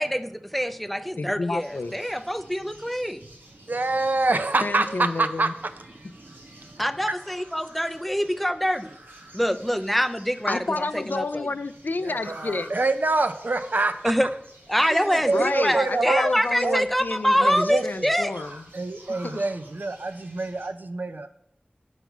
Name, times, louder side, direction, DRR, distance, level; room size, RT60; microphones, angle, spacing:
voice 1, 0.0-3.2 6.8-8.9 9.3-10.6 10.9-11.5 14.0-14.3 14.7-18.3, equal, 5° left, 10 dB, 0.4 m, -25 dB
voice 2, 1.2-2.0 4.6-5.5 10.5-12.7 15.3-18.6 19.2-19.5, left 3 dB, 60° left, 13 dB, 0.4 m, -30 dB
sound 1, 1.6-20.7, right 1 dB, 85° right, 1.6 m, -50 dB
voice 3, 3.7-5.5 6.0-6.3 6.7-7.1 12.0-14.1 14.9-16.3 16.6-16.8 17.4-18.1 18.7-21.3, right 3 dB, 55° right, 9 dB, 0.6 m, -26 dB
7.1 x 5.4 x 4.6 m, 0.70 s
wide cardioid pair, 65°, 4 cm